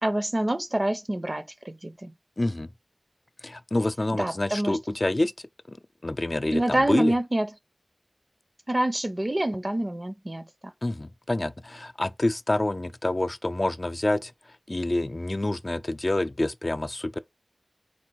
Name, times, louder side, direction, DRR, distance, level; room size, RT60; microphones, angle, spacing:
voice 1, 0.0-2.1 4.1-4.8 6.5-7.5 8.7-10.5, right 1 dB, 45° right, 0.7 m, -27 dB
voice 2, 2.4-2.7 3.4-5.3 6.0-7.1 10.8-14.3 14.7-17.2, left 1 dB, 50° left, 0.3 m, -27 dB
4.2 x 2.4 x 4.5 m
wide cardioid pair, 50°, 0 cm